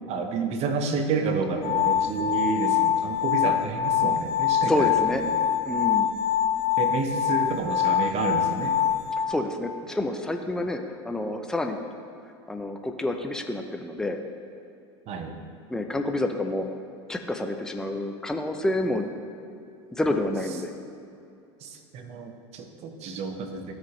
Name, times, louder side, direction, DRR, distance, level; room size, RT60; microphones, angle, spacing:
voice 1, 0.1-5.3 6.8-8.8 15.1-15.4 21.6-23.7, right 4 dB, 45° right, 6 dB, 1.0 m, -30 dB
sound 1, 1.6-9.3, left 10 dB, 50° left, 0.8 m, -24 dB
voice 2, 4.7-5.2 5.6-6.1 9.3-11.8 12.5-14.2 15.7-16.7 17.1-19.1 19.9-20.7, left 1 dB, 5° left, 4 dB, 0.6 m, -28 dB
14.0 x 4.9 x 3.1 m, 2.6 s
hypercardioid pair, 90°, 15 cm